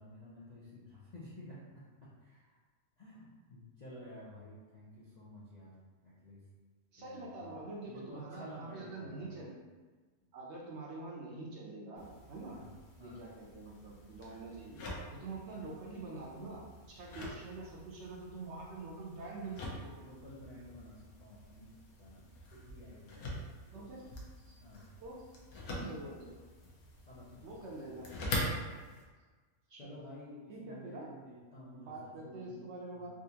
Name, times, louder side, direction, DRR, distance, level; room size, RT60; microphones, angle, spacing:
voice 1, 0.0-2.6 3.0-5.8 6.0-6.4 7.0-7.6 7.8-9.6 12.5-13.2 15.5-15.8 20.0-23.6 24.6-25.0 27.1-28.0 29.8-32.6 32.9-33.1, left 1 dB, 70° left, -8 dB, 0.4 m, -52 dB
voice 2, 6.9-9.5 10.3-12.6 13.0-14.8 15.1-16.6 16.9-20.0 23.7-24.1 24.5-24.6 25.0-25.2 25.7-26.3 27.4-28.1 29.7-29.9 30.5-31.1 31.7-33.1, right 2 dB, 60° right, -3 dB, 0.8 m, -45 dB
sound 1, 11.9-29.0, left 1 dB, 90° left, 1.2 m, -45 dB
3.7 x 2.4 x 2.8 m, 1.4 s
omnidirectional pair, 1.5 m